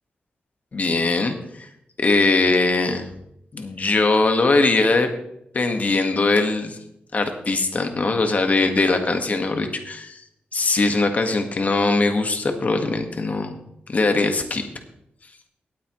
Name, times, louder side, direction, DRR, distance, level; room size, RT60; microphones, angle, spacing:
voice 1, 0.7-1.7 2.0-3.1 3.5-5.1 5.5-6.8 7.1-10.2 10.5-13.6 13.9-14.6, left 3 dB, 40° left, 5 dB, 1.6 m, -21 dB
18.5 x 8.4 x 3.1 m, 0.78 s
wide cardioid pair, 100°, 4 cm